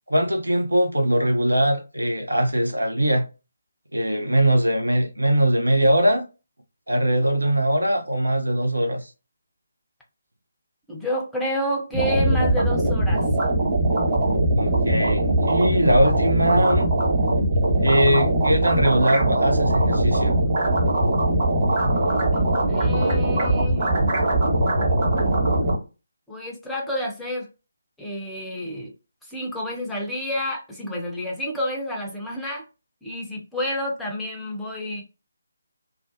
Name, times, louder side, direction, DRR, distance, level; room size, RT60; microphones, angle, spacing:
voice 1, 0.1-3.3 3.9-6.2 6.9-9.1 14.6-16.9 17.8-20.4, right 1 dB, 75° right, 0.6 m, -21 dB
voice 2, 10.9-13.3 22.6-23.9 26.3-27.5 28.0-28.9 29.2-32.6 33.0-35.0, equal, 5° left, 0.5 m, -29 dB
sound 1, 11.9-25.8, right 1 dB, 30° right, 1.2 m, -21 dB
2.4 x 2.1 x 2.5 m
figure-of-eight pair, 150°, 0 cm